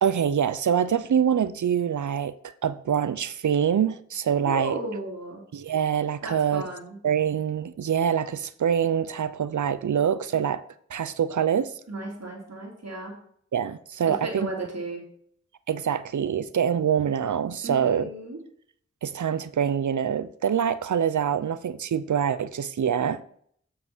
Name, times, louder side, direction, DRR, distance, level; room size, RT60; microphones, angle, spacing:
voice 1, 0.0-4.7 5.5-6.6 7.0-10.6 10.9-11.7 13.5-14.7 15.7-18.1 19.0-23.2, right 8 dB, 90° right, 0.6 m, -25 dB
voice 2, 4.4-5.4 6.2-7.0 11.9-13.2 14.0-15.0 17.6-18.4, right 2 dB, 60° right, 3.1 m, -35 dB
7.5 x 5.7 x 6.1 m
wide cardioid pair, 50°, 29 cm